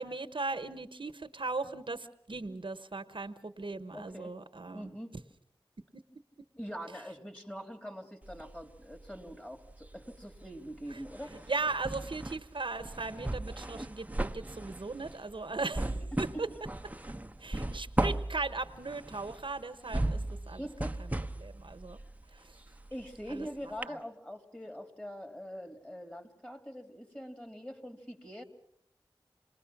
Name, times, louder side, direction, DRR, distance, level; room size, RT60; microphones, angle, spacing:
voice 1, 0.0-4.9 5.9-6.0 10.9-11.0 11.5-16.5 17.4-20.6 21.0-22.0 22.3-22.6 23.3-23.5 23.9-24.0, right 3 dB, 65° right, 10 dB, 1.0 m, -38 dB
voice 2, 3.9-4.3 4.7-5.1 6.6-11.5 15.8-16.5 20.6-21.2 22.9-28.4, equal, 15° left, 5 dB, 2.9 m, -43 dB
sound 1, 8.2-9.4 9.7-23.4 23.8-23.9, right 1 dB, 15° right, 0.8 m, -37 dB
28.0 x 20.0 x 5.9 m, 0.69 s
wide cardioid pair, 40°, 9 cm